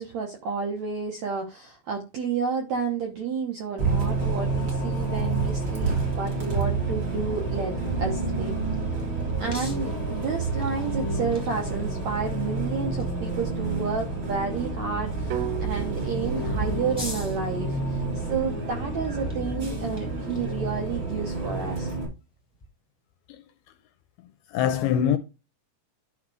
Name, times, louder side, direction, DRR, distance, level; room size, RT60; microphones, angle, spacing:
voice 1, 0.0-8.6 9.4-21.9, right 5 dB, 70° right, 1.7 m, -31 dB
Bus, 3.8-22.1, right 3 dB, 30° right, 3.2 m, -29 dB
sound 1, 8.2-22.7, left 2 dB, 20° left, 0.7 m, -48 dB
sound 2, 15.3-19.4, right 11 dB, 85° right, 3.1 m, -38 dB
voice 2, 24.5-25.2, left 9 dB, 85° left, 2.3 m, -23 dB
11.5 x 4.0 x 4.9 m
omnidirectional pair, 5.0 m